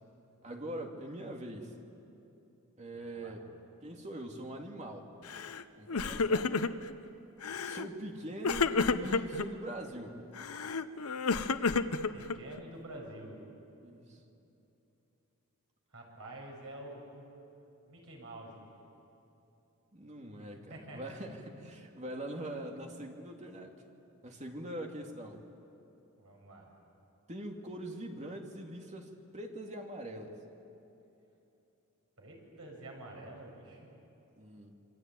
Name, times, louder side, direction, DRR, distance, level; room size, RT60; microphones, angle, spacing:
voice 1, 0.4-1.7 2.8-3.5 3.8-5.1 5.8-6.5 7.6-10.2 13.8-14.2 19.9-23.9 24.2-25.4 27.3-30.4 34.4-34.7, right 1 dB, 30° right, 2 dB, 2.5 m, -43 dB
voice 2, 2.9-3.3 12.1-13.4 15.9-17.3 17.9-18.7 20.7-21.2 26.2-26.7 32.2-33.9, right 1 dB, 70° right, -1 dB, 7.1 m, -48 dB
Crying sobbing, 5.3-5.6 5.9-6.9 7.4-7.9 8.4-9.5 10.4-12.6, left 4 dB, 70° left, 0.8 m, -31 dB
27.5 x 23.5 x 9.2 m, 2.9 s
head